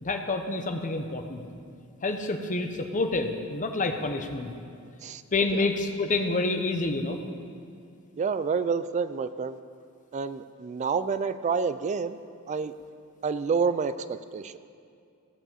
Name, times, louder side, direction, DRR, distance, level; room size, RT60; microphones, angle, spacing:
voice 1, 0.0-1.4 2.0-4.5 5.3-7.2, left 3 dB, 35° left, 6 dB, 0.8 m, -28 dB
voice 2, 8.2-9.6 10.1-12.2 12.5-12.7 13.2-14.6, right 5 dB, 35° right, 14 dB, 0.3 m, -28 dB
16.0 x 5.4 x 7.2 m, 2.4 s
head